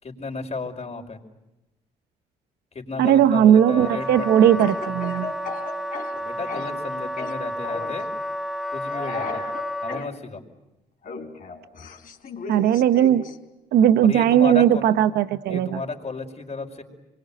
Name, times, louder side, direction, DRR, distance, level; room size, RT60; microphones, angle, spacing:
voice 1, 0.0-1.2 2.7-4.6 6.2-8.1 8.7-9.5 9.8-10.4 14.0-14.8 15.5-16.8, left 4 dB, 40° left, 4 dB, 5.4 m, -33 dB
voice 2, 3.0-5.3 12.5-13.3 13.7-15.8, right 10 dB, 75° right, 12 dB, 0.9 m, -18 dB
Wind instrument woodwind instrument, 3.6-10.1, equal, ahead, 1.9 m, -31 dB
Speech / Cough, 4.6-6.9 7.2-8.0 8.9-10.1 11.0-13.4, left 4 dB, 55° left, 4.3 m, -36 dB
26.0 x 23.0 x 9.2 m, 0.95 s
supercardioid pair, 60°, 17 cm